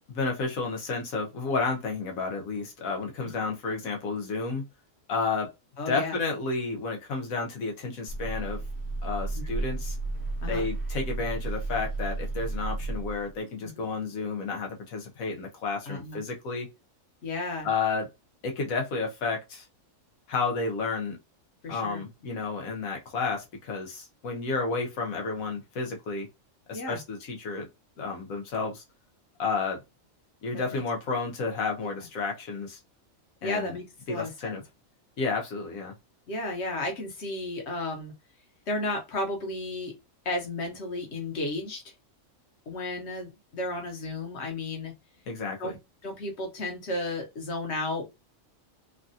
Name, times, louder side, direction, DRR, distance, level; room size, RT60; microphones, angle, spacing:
voice 1, 0.0-4.6 5.1-5.5 5.9-8.6 9.0-10.0 10.5-16.7 17.6-18.1 18.4-19.6 20.3-21.2 21.7-26.3 26.7-27.7 28.0-28.8 29.4-29.8 30.4-32.8 33.4-33.8 34.1-34.6 35.2-35.9 45.3-45.7, left 4 dB, 85° left, 1.3 m, -31 dB
voice 2, 5.8-6.1 9.3-9.5 10.4-10.6 13.6-13.7 15.9-16.2 17.2-17.7 21.6-22.0 26.7-27.0 30.5-30.8 33.4-34.5 36.3-38.1 38.7-39.9 40.2-41.8 42.7-44.9 45.6-45.7 46.0-48.1, left 2 dB, 55° left, 1.2 m, -33 dB
sound 1, 8.1-13.4, right 2 dB, 55° right, 1.1 m, -33 dB
3.2 x 2.4 x 2.6 m
omnidirectional pair, 1.4 m